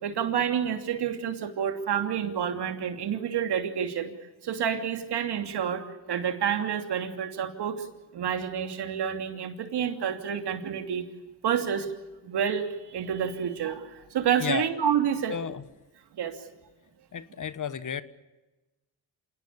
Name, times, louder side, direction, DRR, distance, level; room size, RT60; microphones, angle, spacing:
voice 1, 0.0-4.1 4.4-7.9 8.1-11.1 11.4-11.9 12.2-15.4 16.1-16.4, right 8 dB, 70° right, 6 dB, 3.0 m, -29 dB
voice 2, 15.3-15.6 17.1-18.0, left 7 dB, 50° left, 14 dB, 1.3 m, -32 dB
27.5 x 18.5 x 8.6 m, 1.1 s
cardioid pair, 90°, 41 cm